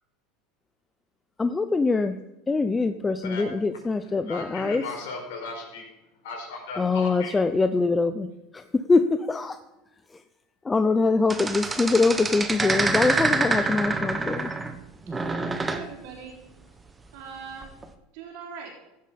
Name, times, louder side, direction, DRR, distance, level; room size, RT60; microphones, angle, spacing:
voice 1, 1.4-2.2 2.5-4.8 6.8-8.3 8.5-9.6 10.6-14.5, left 3 dB, 15° left, 9 dB, 0.6 m, -23 dB
voice 2, 4.0-5.9 6.2-7.3, left 3 dB, 80° left, 1 dB, 4.5 m, -36 dB
sound 1, 11.3-14.8 15.1-15.9 17.6-17.9, right 3 dB, 15° right, 1.1 m, -26 dB
voice 3, 15.7-16.4 17.1-17.7 18.1-18.7, right 6 dB, 70° right, -2 dB, 3.9 m, -41 dB
16.0 x 7.5 x 5.4 m, 0.93 s
supercardioid pair, 105°, 0 cm